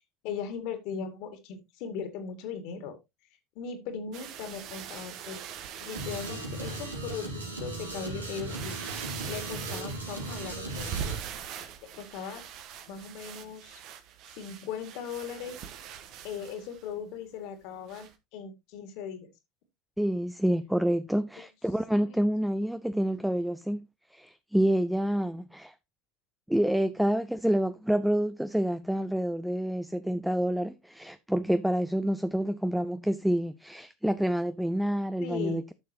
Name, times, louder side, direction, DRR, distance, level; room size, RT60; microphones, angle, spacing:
voice 1, 0.2-3.0 3.6-5.4 5.8-11.0 11.9-12.4 12.9-13.8 14.4-15.6 16.2-19.3 21.9-22.2 35.2-35.6, left 6 dB, 55° left, 2.3 m, -38 dB
sound 1, 4.1-7.3 7.9-8.0 8.4-16.9 17.9-18.1, right 9 dB, 50° right, 1.3 m, -42 dB
sound 2, 5.9-11.2, right 2 dB, 90° right, 2.6 m, -37 dB
voice 2, 20.0-23.8 24.1-25.7 26.5-35.7, right 1 dB, ahead, 0.5 m, -28 dB
11.5 x 6.8 x 2.9 m
figure-of-eight pair, 75°, 0 cm